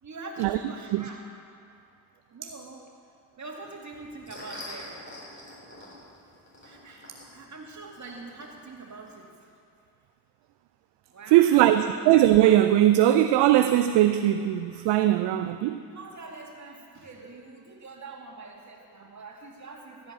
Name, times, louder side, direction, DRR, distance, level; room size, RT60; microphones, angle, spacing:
voice 1, 0.0-1.3 2.3-2.8 3.4-4.9 6.6-9.5 11.1-11.9 15.9-20.1, right 3 dB, 40° right, 0 dB, 2.3 m, -44 dB
sound 1, 3.9-9.1, left 1 dB, 25° left, 3.7 m, -46 dB
voice 2, 11.3-15.8, right 13 dB, 65° right, 9 dB, 0.6 m, -20 dB
14.5 x 5.2 x 8.5 m, 2.4 s
hypercardioid pair, 40°, 45 cm